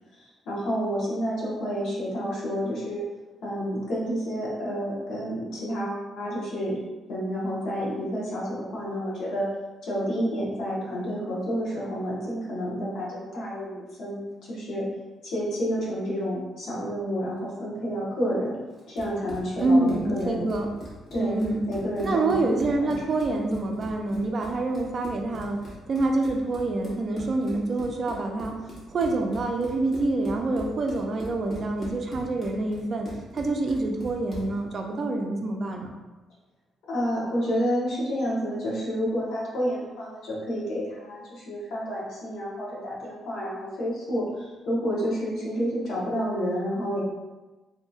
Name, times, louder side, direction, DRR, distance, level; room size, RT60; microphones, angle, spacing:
voice 1, 0.2-3.0 3.4-6.8 7.1-9.5 9.8-14.2 14.5-14.9 15.2-18.6 18.9-20.5 21.1-21.3 21.7-22.5 22.8-22.9 36.9-47.0, equal, 75° left, -6 dB, 1.0 m, -29 dB
Run, 18.8-34.6, equal, 30° left, 1.0 m, -42 dB
voice 2, 19.6-20.7 21.2-21.7 22.0-28.6 28.9-36.0, right 2 dB, 45° right, 2 dB, 0.4 m, -26 dB
2.8 x 2.6 x 2.3 m, 1.2 s
cardioid pair, 90°, 0 cm